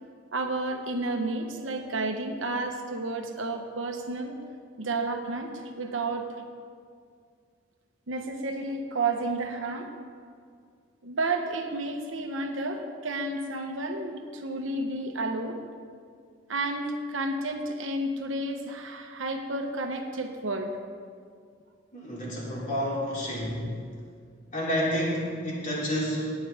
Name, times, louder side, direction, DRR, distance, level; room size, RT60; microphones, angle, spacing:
voice 1, 0.3-4.4 4.8-6.3 8.1-9.9 11.0-15.6 16.5-20.7, right 2 dB, 85° right, 5 dB, 1.1 m, -31 dB
voice 2, 21.9-23.7 24.5-26.3, equal, 45° left, -5 dB, 3.2 m, -29 dB
18.0 x 8.7 x 3.5 m, 2.1 s
head